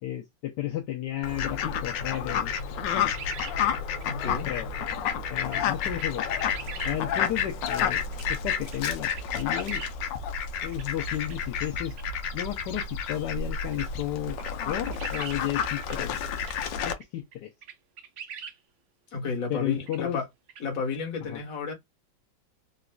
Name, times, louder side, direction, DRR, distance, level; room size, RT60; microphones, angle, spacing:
voice 1, 0.0-2.5 4.5-4.7 5.3-6.3 6.8-8.0 8.3-9.8 10.6-11.9 12.3-14.4 14.7-16.1 16.9-17.5 19.5-20.2 21.2-21.4, left 13 dB, 75° left, 1.2 m, -33 dB
Fowl, 1.2-16.9, left 7 dB, 90° left, 1.3 m, -30 dB
sound 1, 1.9-2.2 2.5-3.6 4.0-4.1 4.5-4.6 5.4-5.6 5.9-6.9 8.1-8.3 8.7-8.8 9.1-9.9 10.7-11.4 11.9-12.0 13.1-13.2 13.7-13.9 14.4-15.4 15.8-16.0 16.4-16.5 17.0-17.1 17.3-17.4 17.6-18.6 19.9-20.0 20.5-20.6, right 7 dB, 65° right, 0.7 m, -42 dB
voice 2, 4.0-4.5 19.1-20.3 20.6-21.7, left 4 dB, 50° left, 1.5 m, -32 dB
3.9 x 2.5 x 2.2 m
omnidirectional pair, 1.9 m